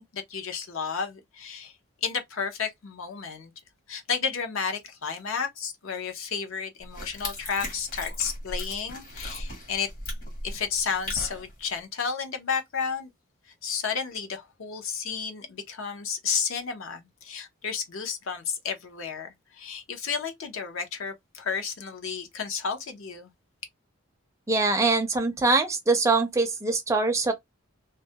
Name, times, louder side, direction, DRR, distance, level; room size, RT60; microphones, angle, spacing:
voice 1, 0.0-1.8 2.0-3.5 3.9-9.9 10.4-13.1 13.5-23.3, left 6 dB, 70° left, 0.6 m, -32 dB
sound 1, 6.8-11.8, left 1 dB, 40° left, 1.0 m, -37 dB
voice 2, 24.5-27.3, right 3 dB, 15° right, 0.4 m, -23 dB
2.2 x 2.1 x 2.7 m
head